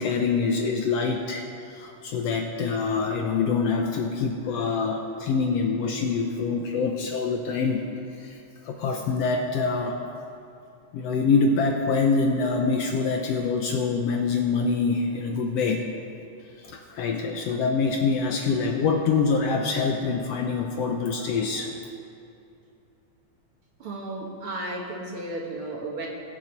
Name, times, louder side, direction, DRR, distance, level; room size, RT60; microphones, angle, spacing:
voice 1, 0.0-7.8 8.2-10.0 10.9-15.8 16.6-21.7, left 4 dB, 70° left, 3 dB, 1.6 m, -25 dB
voice 2, 23.8-26.1, right 2 dB, 55° right, -1 dB, 1.9 m, -34 dB
21.5 x 7.1 x 4.5 m, 2.6 s
omnidirectional pair, 3.4 m